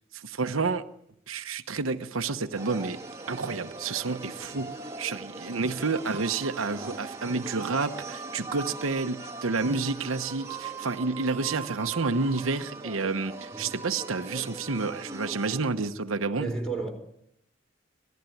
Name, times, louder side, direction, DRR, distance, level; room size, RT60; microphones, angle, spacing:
voice 1, 0.1-0.9 1.3-3.0 3.3-16.5, right 4 dB, 85° right, 1.0 m, -30 dB
sound 1, 2.5-15.6, right 3 dB, 15° right, 1.9 m, -40 dB
voice 2, 16.4-16.9, right 3 dB, 5° left, 4.4 m, -33 dB
25.5 x 17.5 x 9.3 m
head